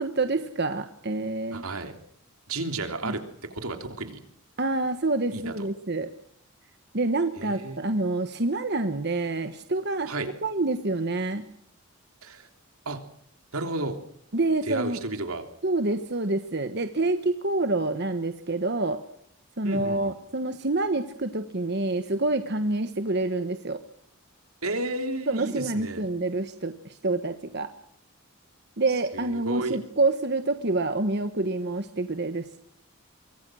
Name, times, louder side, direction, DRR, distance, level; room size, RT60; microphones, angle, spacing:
voice 1, 0.0-1.6 3.0-3.1 4.6-6.1 6.9-10.1 10.4-11.5 14.3-15.0 15.6-19.0 19.6-23.8 25.3-27.7 28.8-32.6, right 2 dB, 50° right, 8 dB, 1.3 m, -27 dB
voice 2, 1.5-2.0 2.5-3.2 3.5-4.2 5.3-5.5 7.4-7.8 10.1-10.3 12.2-12.5 12.8-13.0 13.5-14.0 14.6-15.4 19.6-20.1 24.6-26.0 28.9-29.8, right 2 dB, 80° right, 6 dB, 3.3 m, -32 dB
25.5 x 23.5 x 6.4 m, 0.66 s
head